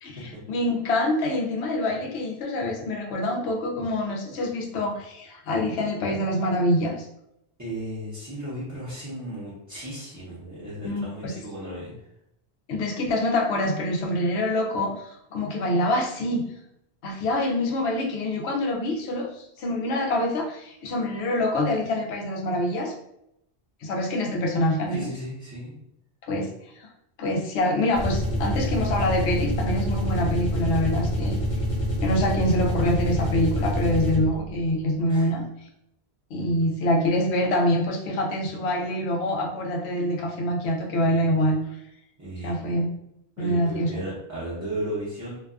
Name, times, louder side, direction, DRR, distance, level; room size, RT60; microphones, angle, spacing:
voice 1, 0.0-6.9 10.8-11.3 12.7-16.4 17.0-22.9 23.8-25.1 26.3-26.5 26.7-26.9 27.2-31.4 32.0-35.4 36.3-41.6 42.4-42.9 43.4-43.9, left 1 dB, 75° left, 1 dB, 0.8 m, -25 dB
voice 2, 7.6-11.9 24.9-25.7 35.1-35.3 42.2-42.6 43.4-45.4, right 1 dB, 20° right, -10 dB, 0.6 m, -35 dB
sound 1, 27.9-34.5, equal, 35° left, 0.9 m, -26 dB
2.6 x 2.3 x 2.3 m, 0.78 s
omnidirectional pair, 1.1 m